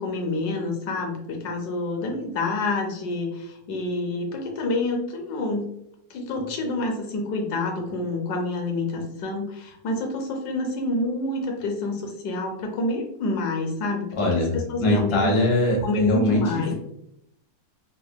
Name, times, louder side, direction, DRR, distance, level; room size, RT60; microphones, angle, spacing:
voice 1, 0.0-5.7 6.1-14.1 14.4-15.5 15.8-16.7, left 2 dB, 80° left, 3 dB, 1.2 m, -27 dB
voice 2, 14.2-16.7, left 1 dB, 45° left, -2 dB, 0.4 m, -22 dB
3.4 x 2.1 x 2.2 m, 0.76 s
omnidirectional pair, 1.8 m